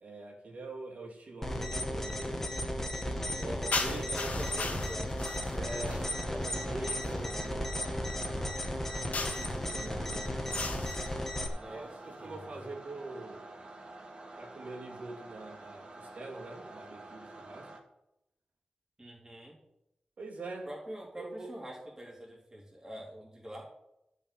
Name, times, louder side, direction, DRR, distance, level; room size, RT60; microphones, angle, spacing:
voice 1, 0.0-3.0 3.4-4.4 5.5-8.3 8.9-10.7 11.6-13.5 14.4-17.7 20.2-20.7 21.1-21.5, right 2 dB, 65° right, -1 dB, 3.0 m, -44 dB
sound 1, 1.4-11.5, left 1 dB, 10° left, 1.6 m, -35 dB
voice 2, 3.1-5.1 11.5-12.6 19.0-19.6 20.7-23.7, right 1 dB, 20° right, -5 dB, 3.6 m, -45 dB
sound 2, 3.7-6.2 7.0-7.3 9.1-9.6 10.5-11.1, left 3 dB, 65° left, 1.5 m, -37 dB
sound 3, 5.2-17.8, right 2 dB, 35° right, 1.9 m, -49 dB
11.5 x 5.7 x 8.6 m, 0.86 s
wide cardioid pair, 125°, 3 cm